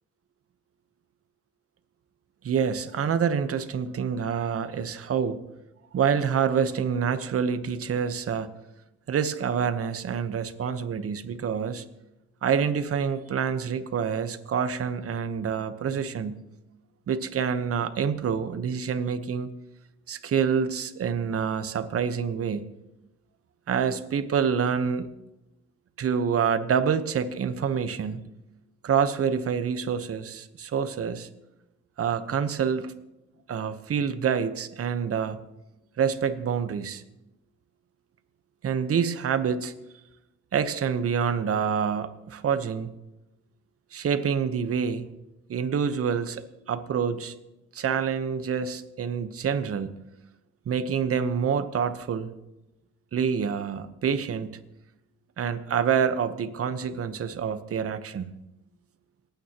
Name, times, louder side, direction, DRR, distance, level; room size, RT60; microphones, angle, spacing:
voice 1, 2.4-5.4 5.9-8.5 9.1-11.8 12.4-16.4 17.1-19.5 20.1-22.6 23.7-25.1 26.0-28.2 28.8-31.3 32.0-32.9 33.5-35.4 36.0-37.0 38.6-39.7 40.5-42.9 43.9-45.1 45.5-47.3 47.7-49.9 50.7-52.3 53.1-54.6 55.4-58.3, right 7 dB, 50° right, 11 dB, 1.0 m, -27 dB
27.0 x 9.2 x 3.0 m, 0.94 s
cardioid pair, 90°, 30 cm